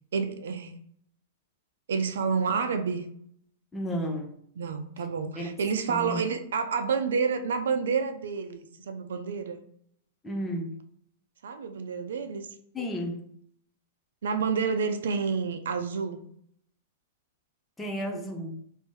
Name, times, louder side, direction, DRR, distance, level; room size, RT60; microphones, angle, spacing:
voice 1, 0.1-0.7 1.9-3.1 4.6-9.6 11.4-12.5 14.2-16.2 18.1-18.2, right 5 dB, 85° right, 7 dB, 0.5 m, -29 dB
voice 2, 3.7-4.3 5.4-5.5 5.9-6.3 10.2-10.8 12.7-13.4 17.8-18.6, equal, 10° left, 2 dB, 0.4 m, -33 dB
3.3 x 2.7 x 3.1 m, 0.65 s
supercardioid pair, 165°, 0 cm